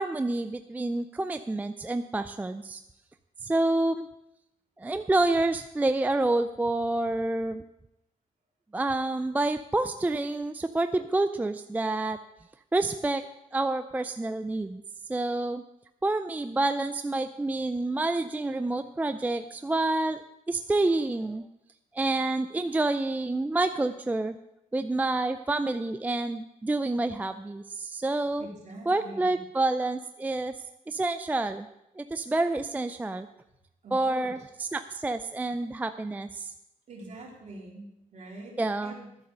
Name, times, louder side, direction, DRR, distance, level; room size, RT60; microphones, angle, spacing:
voice 1, 0.0-2.8 3.4-4.1 4.8-7.6 8.7-12.2 12.7-13.2 13.5-14.8 15.1-15.6 16.0-20.2 20.5-21.4 21.9-24.3 24.7-28.4 28.9-30.5 30.9-31.7 32.0-33.3 33.9-34.4 34.7-36.5 38.6-38.9, right 2 dB, 10° right, 10 dB, 0.4 m, -28 dB
voice 2, 28.4-29.4 33.8-34.5 36.9-39.2, right 1 dB, 55° right, -2 dB, 3.7 m, -45 dB
11.5 x 8.2 x 6.6 m, 0.86 s
wide cardioid pair, 145°, 14 cm